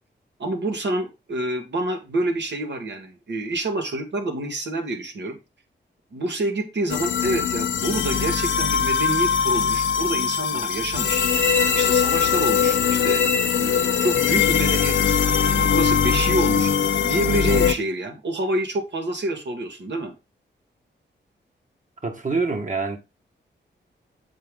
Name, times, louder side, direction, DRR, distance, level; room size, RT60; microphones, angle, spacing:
voice 1, 0.4-5.4 6.1-11.2 11.7-15.1 15.5-16.7 17.0-20.1, right 2 dB, 70° right, 1.8 m, -27 dB
sound 1, 6.9-17.7, left 7 dB, 80° left, 0.7 m, -21 dB
voice 2, 22.0-23.0, right 4 dB, 40° right, 1.6 m, -25 dB
7.3 x 4.8 x 3.6 m
cardioid pair, 75°, 19 cm